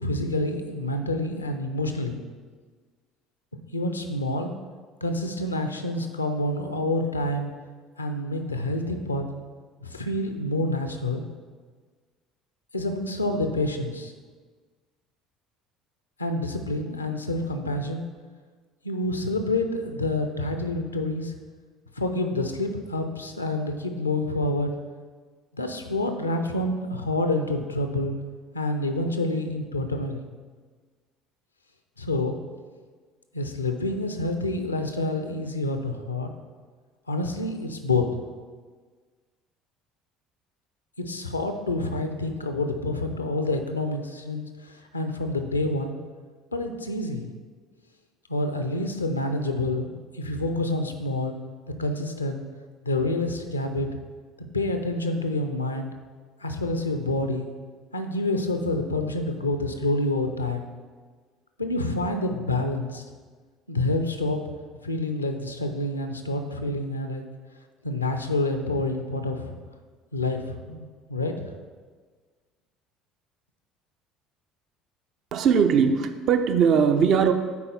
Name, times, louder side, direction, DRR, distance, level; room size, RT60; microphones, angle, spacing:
voice 1, 0.0-2.2 3.7-4.5 5.0-7.5 8.0-9.2 9.8-11.2 12.7-14.1 16.2-18.1 18.8-21.3 22.0-24.7 25.5-28.2 28.5-30.2 32.0-32.4 33.3-36.3 37.1-38.1 41.0-46.0 46.5-47.3 48.3-51.4 51.7-52.4 52.8-53.9 54.4-56.0 56.4-57.5 57.9-60.7 61.6-63.0 63.7-64.4 64.8-67.2 67.8-69.5 70.1-71.5, left 2 dB, 85° left, 7 dB, 0.5 m, -28 dB
voice 2, 75.3-77.3, right 6 dB, 50° right, 8 dB, 0.5 m, -20 dB
9.4 x 4.2 x 3.5 m, 1.5 s
figure-of-eight pair, 60°, 0 cm